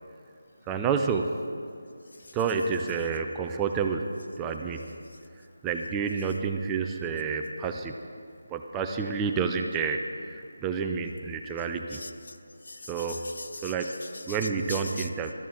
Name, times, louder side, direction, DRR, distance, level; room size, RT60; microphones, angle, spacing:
voice 1, 0.7-1.3 2.3-4.1 4.4-4.9 5.6-8.0 8.5-12.0 12.9-13.3 13.6-13.9 14.3-15.3, right 5 dB, 10° right, 5 dB, 0.4 m, -29 dB
voice 2, 11.9-12.4 12.6-14.4 14.7-15.1, left 3 dB, 65° left, 9 dB, 0.8 m, -41 dB
13.0 x 12.5 x 4.4 m, 2.4 s
figure-of-eight pair, 170°, 0 cm